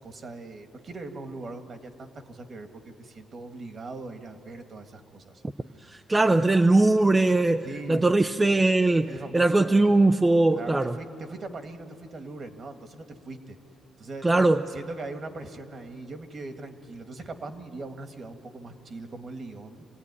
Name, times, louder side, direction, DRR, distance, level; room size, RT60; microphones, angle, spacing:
voice 1, 0.0-5.4 5.8-5.9 7.7-8.1 9.1-9.9 10.5-13.6 14.0-14.3 14.7-19.9, right 2 dB, 45° right, 6 dB, 1.8 m, -40 dB
voice 2, 5.9-11.0 14.2-14.6, right 2 dB, 20° right, 7 dB, 0.6 m, -21 dB
26.0 x 17.0 x 9.8 m, 2.8 s
cardioid pair, 90°, 0 cm